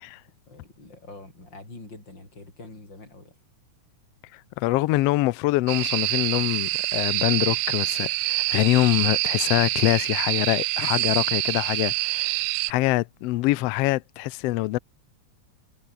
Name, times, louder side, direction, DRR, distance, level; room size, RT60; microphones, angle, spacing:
voice 1, 0.5-3.4, left 2 dB, 35° left, 8.7 m, -45 dB
voice 2, 4.3-14.8, left 18 dB, 90° left, 1.4 m, -24 dB
sound 1, 5.7-12.7, right 21 dB, 80° right, 2.0 m, -26 dB
omnidirectional pair, 3.5 m